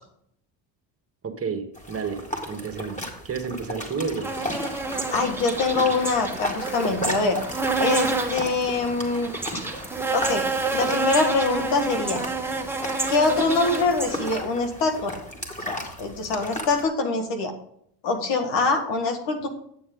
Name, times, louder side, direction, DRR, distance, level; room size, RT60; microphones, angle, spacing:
voice 1, 1.2-4.3, right 5 dB, 30° right, 6 dB, 1.5 m, -31 dB
sound 1, 1.7-16.8, equal, 15° left, 2.3 m, -35 dB
sound 2, 4.2-14.3, right 3 dB, 5° right, 1.3 m, -29 dB
voice 2, 5.1-7.4 7.8-9.3 10.1-10.4 10.7-12.2 13.1-15.1 15.7-17.5 18.0-19.5, left 3 dB, 75° left, 5 dB, 1.8 m, -24 dB
9.3 x 7.0 x 3.8 m, 0.70 s
supercardioid pair, 70°, 44 cm